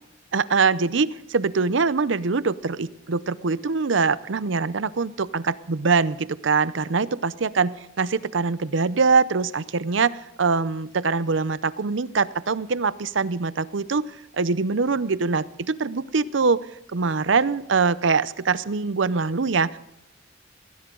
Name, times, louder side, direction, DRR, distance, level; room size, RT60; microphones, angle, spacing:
voice 1, 0.3-14.0 14.4-16.6 16.9-19.8, right 4 dB, 75° right, 17 dB, 0.7 m, -23 dB
20.5 x 16.0 x 3.9 m, 0.88 s
head